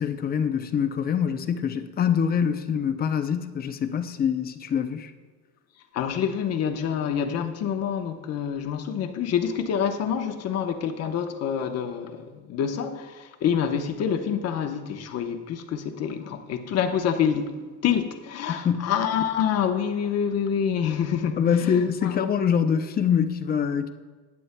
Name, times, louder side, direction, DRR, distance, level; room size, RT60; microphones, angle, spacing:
voice 1, 0.0-5.1 18.5-18.9 21.4-23.9, left 7 dB, 25° left, 0.5 m, -24 dB
voice 2, 5.9-22.1, left 8 dB, 45° left, 0.9 m, -27 dB
18.0 x 9.1 x 2.2 m
cardioid pair, 145°, 36 cm